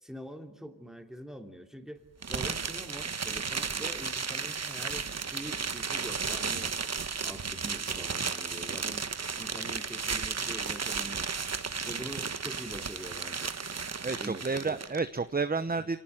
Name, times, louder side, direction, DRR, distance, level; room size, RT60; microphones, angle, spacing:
voice 1, 0.0-2.0 2.3-6.7 7.2-9.0 9.4-11.3 11.8-13.5 14.2-14.8, equal, ahead, 5 dB, 2.9 m, -44 dB
sound 1, 2.2-15.0, right 5 dB, 40° right, 1.2 m, -34 dB
sound 2, 2.4-11.8, right 5 dB, 85° right, 4.6 m, -53 dB
voice 2, 14.0-16.0, right 4 dB, 25° right, 11 dB, 0.9 m, -30 dB
27.0 x 18.5 x 9.1 m, 0.93 s
cardioid pair, 75°, 38 cm